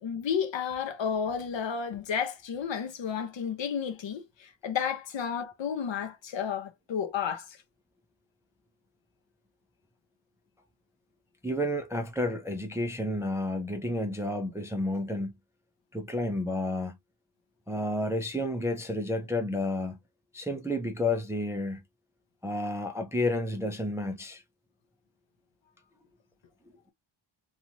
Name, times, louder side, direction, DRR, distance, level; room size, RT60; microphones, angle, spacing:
voice 1, 0.0-7.5, left 7 dB, 60° left, 0.8 m, -32 dB
voice 2, 11.4-15.3 15.9-17.0 17.7-20.0 20.3-21.8 22.4-24.4, left 1 dB, 5° right, 0.4 m, -31 dB
3.0 x 2.4 x 2.6 m
wide cardioid pair, 140°, 49 cm